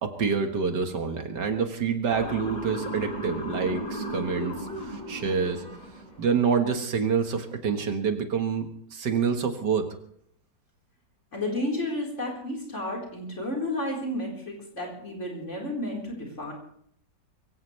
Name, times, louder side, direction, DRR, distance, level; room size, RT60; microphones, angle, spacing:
voice 1, 0.0-5.6 6.2-9.9, right 6 dB, 80° right, 6 dB, 2.2 m, -27 dB
Motor vehicle (road) / Siren, 2.1-6.3, right 1 dB, 25° left, 3.6 m, -35 dB
voice 2, 11.3-16.5, left 1 dB, 45° left, -2 dB, 4.8 m, -32 dB
23.0 x 16.5 x 3.3 m, 0.66 s
omnidirectional pair, 1.8 m